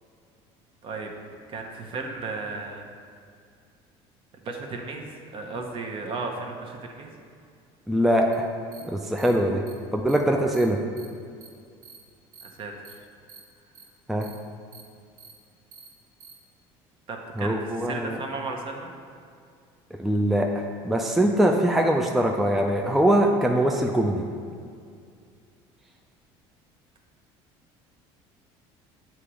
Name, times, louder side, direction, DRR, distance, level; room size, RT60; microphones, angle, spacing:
voice 1, 1.5-2.9 4.4-7.1 12.4-13.0 17.1-18.9, right 3 dB, 45° right, 2 dB, 0.9 m, -35 dB
voice 2, 7.9-8.4 8.8-9.6 9.9-10.8 14.1-14.3 17.4-18.2 19.9-24.2, right 1 dB, ahead, 1 dB, 0.4 m, -22 dB
sound 1, 8.3-8.4 8.7-8.8 9.2-9.3 9.7-9.8 10.1-10.2 10.5-10.6 11.0-11.1 11.4-11.5 11.8-12.0 12.3-12.5 12.8-12.9 13.3-13.4 13.7-13.8 14.2-14.3 14.7-14.8 15.2-15.3 15.7-15.9 16.2-16.3, right 6 dB, 80° right, 0.9 m, -47 dB
8.2 x 3.0 x 4.8 m, 2.3 s
cardioid pair, 115°, 12 cm